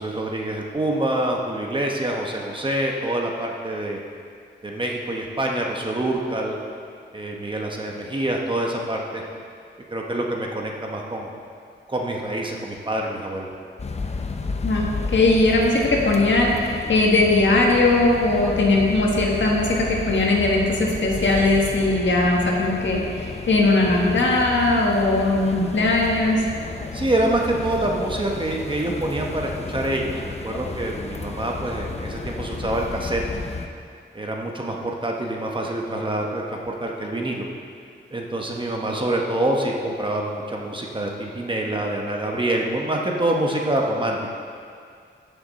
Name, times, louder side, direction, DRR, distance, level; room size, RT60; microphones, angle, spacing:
voice 1, 0.0-4.0 4.6-6.6 7.1-9.2 9.9-11.3 11.9-13.5 26.9-33.2 34.1-37.4 38.1-44.2, right 1 dB, 25° right, 0 dB, 1.1 m, -26 dB
sound 1, 13.8-33.7, left 3 dB, 35° left, 0.7 m, -32 dB
voice 2, 14.6-26.4, left 2 dB, 70° left, -1 dB, 1.7 m, -19 dB
15.0 x 7.0 x 4.1 m, 2.3 s
wide cardioid pair, 145°, 20 cm